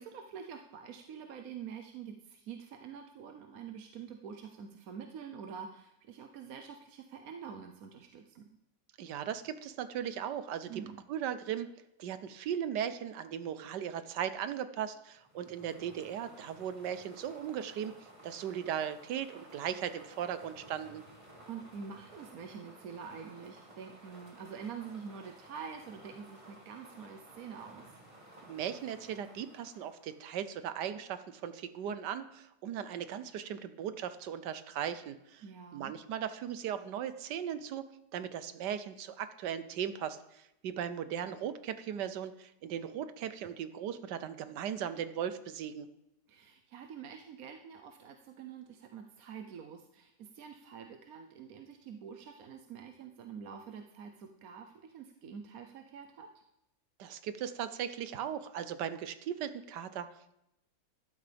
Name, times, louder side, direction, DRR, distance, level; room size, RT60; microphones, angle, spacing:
voice 1, 0.0-8.5 10.7-11.0 21.4-27.9 35.4-35.9 46.3-56.3, right 7 dB, 65° right, 4 dB, 1.1 m, -46 dB
voice 2, 9.0-10.8 11.1-11.7 12.0-17.9 18.2-21.0 28.4-35.4 35.7-37.9 38.1-45.9 57.0-60.3, right 9 dB, 80° right, 11 dB, 1.4 m, -38 dB
sound 1, 15.1-30.6, right 1 dB, 20° right, 1.9 m, -56 dB
13.5 x 12.0 x 3.4 m, 0.85 s
omnidirectional pair, 1.8 m